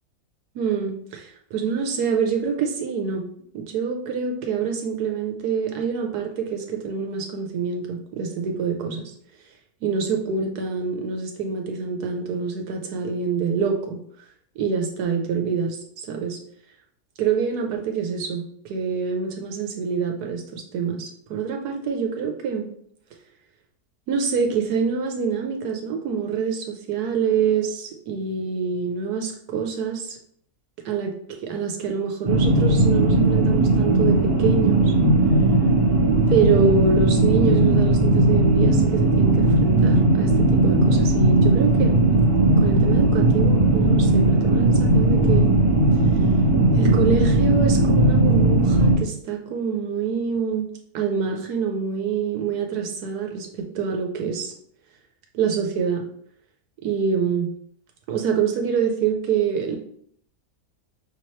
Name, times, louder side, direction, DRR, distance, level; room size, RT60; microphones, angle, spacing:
voice 1, 0.5-3.2 3.5-9.1 9.8-14.0 14.6-15.8 16.1-16.4 17.2-22.7 24.1-30.2 30.8-34.9 36.3-41.9 42.6-45.5 46.7-50.7 50.9-54.5 55.3-56.0 56.8-57.5 58.1-59.8, right 6 dB, 80° right, 2 dB, 1.2 m, -26 dB
sound 1, 32.2-49.0, right 2 dB, 30° right, 0.7 m, -18 dB
5.8 x 2.9 x 3.1 m, 0.65 s
omnidirectional pair, 1.7 m